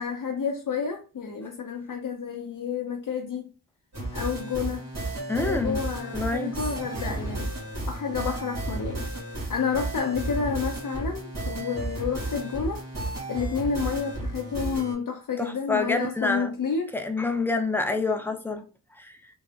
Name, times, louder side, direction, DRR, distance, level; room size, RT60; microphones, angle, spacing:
voice 1, 0.0-3.5 4.1-4.9 5.3-7.5 7.9-9.1 9.5-12.8 13.3-16.9, left 6 dB, 60° left, 0.6 m, -30 dB
sound 1, 3.9-14.9, right 2 dB, 45° right, 1.6 m, -33 dB
voice 2, 5.3-5.8 6.1-6.6 15.4-16.5 16.9-18.6 19.0-19.2, left 3 dB, 5° left, 0.4 m, -27 dB
3.4 x 2.0 x 2.3 m
cardioid pair, 65°, 36 cm